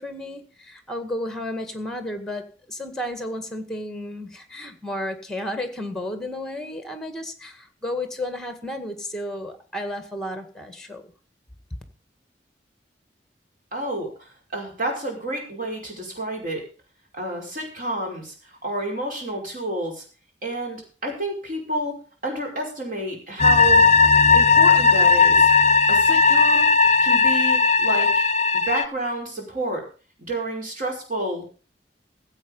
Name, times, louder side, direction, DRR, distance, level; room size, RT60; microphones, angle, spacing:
voice 1, 0.0-11.1, left 1 dB, 5° left, 1.9 m, -32 dB
voice 2, 13.7-16.6 17.1-18.3 18.6-20.0 20.4-23.9 24.3-25.5 25.9-26.7 27.0-28.3 28.7-29.8 30.2-31.5, right 1 dB, 50° right, 5.2 m, -29 dB
sound 1, 23.4-28.8, left 4 dB, 40° left, 0.6 m, -16 dB
16.0 x 7.9 x 5.4 m
head